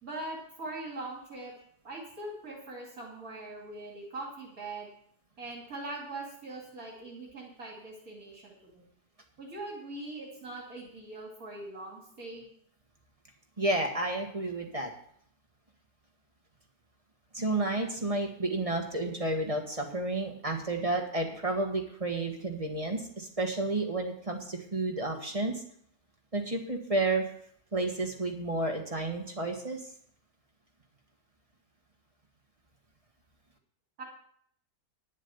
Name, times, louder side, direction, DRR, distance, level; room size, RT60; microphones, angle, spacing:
voice 1, 0.0-1.5 1.8-4.9 5.4-8.9 9.4-12.5 34.0-34.1, right 2 dB, 60° right, -2 dB, 3.0 m, -41 dB
voice 2, 13.6-14.9 17.3-25.6 26.3-27.3 27.7-29.8, right 2 dB, 20° right, 2 dB, 1.5 m, -31 dB
10.5 x 7.4 x 7.1 m, 0.64 s
omnidirectional pair, 1.8 m